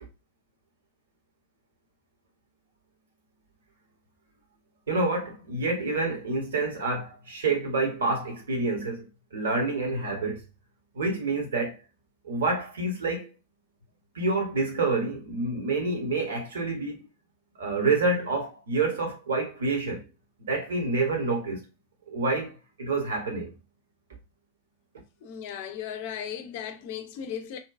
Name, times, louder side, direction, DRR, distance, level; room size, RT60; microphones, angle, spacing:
voice 1, 4.9-10.4 10.9-11.8 12.2-13.3 14.1-17.1 17.6-20.0 20.5-21.6 22.1-23.5, right 3 dB, 65° right, 0.9 m, -28 dB
voice 2, 25.2-27.6, left 8 dB, 50° left, 0.4 m, -36 dB
2.7 x 2.2 x 2.4 m
figure-of-eight pair, 90°, 0 cm